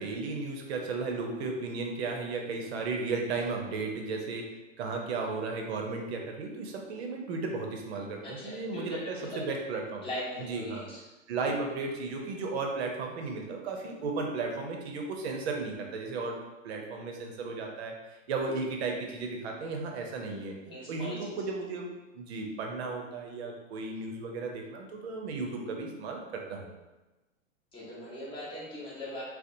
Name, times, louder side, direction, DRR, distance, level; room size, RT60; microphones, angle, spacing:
voice 1, 0.0-4.5 4.8-10.0 10.5-10.9 11.3-16.4 16.6-18.0 18.3-20.6 20.9-21.9 22.1-26.7, right 3 dB, 55° right, 2 dB, 0.6 m, -34 dB
voice 2, 8.2-9.4 10.0-11.0 20.6-21.4 27.7-29.2, left 1 dB, 15° left, -8 dB, 0.8 m, -40 dB
2.8 x 2.0 x 2.6 m, 1.1 s
hypercardioid pair, 115°, 39 cm